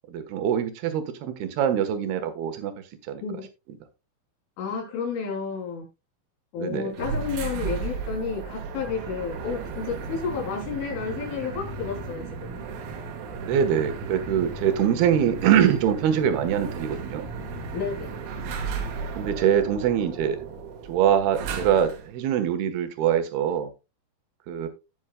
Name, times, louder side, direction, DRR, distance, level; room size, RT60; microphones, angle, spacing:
voice 1, 0.1-2.7 3.1-3.2 6.6-6.9 13.3-17.3 19.1-20.4 20.9-23.7 24.5-24.7, right 9 dB, 65° right, 8 dB, 2.7 m, -23 dB
voice 2, 4.6-5.9 6.5-12.5 17.7-18.2, left 6 dB, 70° left, -1 dB, 5.8 m, -31 dB
sound 1, 6.9-22.1, right 5 dB, 85° right, 4.4 m, -35 dB
17.5 x 6.4 x 2.3 m, 0.27 s
omnidirectional pair, 5.8 m